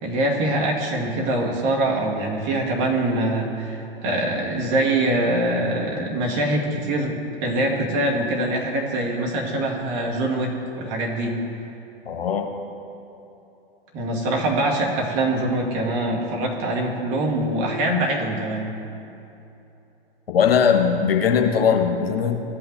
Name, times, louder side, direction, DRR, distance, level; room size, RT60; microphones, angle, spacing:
voice 1, 0.0-7.1 7.4-10.5 10.8-11.4 13.9-18.7, right 1 dB, 45° right, -1 dB, 1.8 m, -23 dB
voice 2, 12.0-12.5 20.3-22.4, left 7 dB, 75° left, 3 dB, 1.0 m, -19 dB
15.5 x 5.8 x 2.7 m, 2.9 s
figure-of-eight pair, 100°, 30 cm